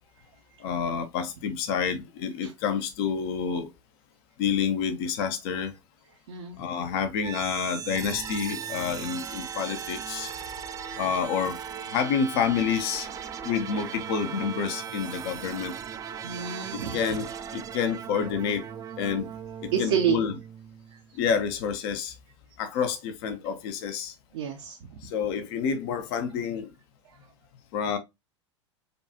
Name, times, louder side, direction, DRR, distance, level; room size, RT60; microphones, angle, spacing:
voice 1, 0.6-3.7 4.4-5.7 6.6-10.3 11.0-11.6 11.9-13.1 13.4-15.7 16.9-17.3 17.5-18.7 19.0-19.3 19.6-20.4 21.2-22.1 22.6-24.1 25.0-26.7 27.7-28.0, left 7 dB, 50° left, 0.7 m, -28 dB
sound 1, 7.2-21.1, right 8 dB, 20° right, 0.4 m, -38 dB
voice 2, 16.2-17.0 19.7-20.2 24.3-24.8, right 8 dB, 60° right, 0.7 m, -28 dB
5.2 x 2.3 x 2.7 m
figure-of-eight pair, 85°, 16 cm